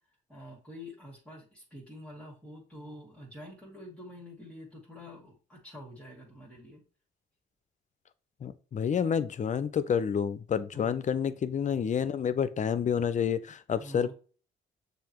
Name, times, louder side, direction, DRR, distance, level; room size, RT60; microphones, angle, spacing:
voice 1, 0.3-6.8 10.7-10.9 13.8-14.1, left 1 dB, 5° left, -4 dB, 1.6 m, -47 dB
voice 2, 8.4-14.1, left 7 dB, 40° left, 13 dB, 0.5 m, -29 dB
6.8 x 2.6 x 2.9 m, 0.38 s
cardioid pair, 90°, 20 cm